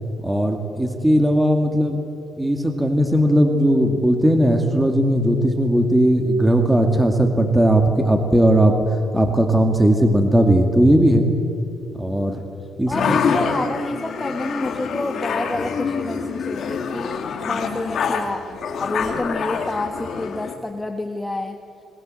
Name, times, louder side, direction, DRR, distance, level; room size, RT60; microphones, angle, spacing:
voice 1, 0.2-2.0 2.4-11.2 12.0-12.4 12.8-13.2, right 1 dB, 10° right, 4 dB, 2.2 m, -17 dB
sound 1, 12.9-20.5, left 6 dB, 60° left, 2.3 m, -26 dB
voice 2, 12.9-18.4 18.8-21.6, left 2 dB, 15° left, 4 dB, 1.3 m, -29 dB
21.5 x 19.0 x 7.8 m, 2.5 s
cardioid pair, 90°, 0 cm